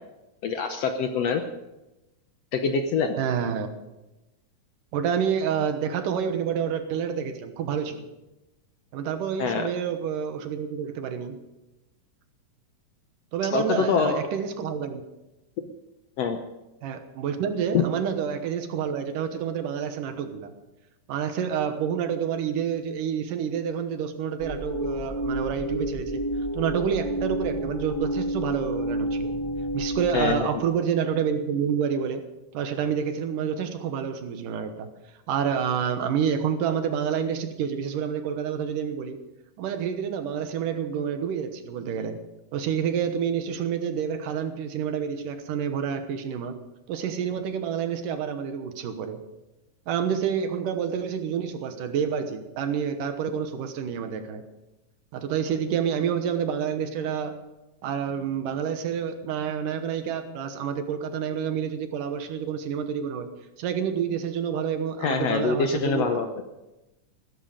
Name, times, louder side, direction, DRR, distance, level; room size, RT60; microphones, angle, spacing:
voice 1, 0.4-1.4 2.5-3.1 9.4-9.7 13.5-14.2 16.2-16.4 17.7-17.8 30.1-30.5 65.0-66.3, left 5 dB, 70° left, 7 dB, 1.6 m, -24 dB
voice 2, 3.2-3.7 4.9-8.1 8.9-11.4 13.3-15.0 16.8-20.5 21.1-26.2 26.5-29.4 29.7-32.2 32.5-34.9 35.3-39.2 39.6-42.2 42.5-46.5 46.9-49.2 49.9-54.4 55.1-57.4 57.8-63.3 63.6-66.2, right 7 dB, 80° right, 8 dB, 2.8 m, -28 dB
sound 1, 24.4-30.4, equal, 15° left, 0.9 m, -30 dB
16.0 x 13.5 x 5.1 m, 1.0 s
omnidirectional pair, 3.8 m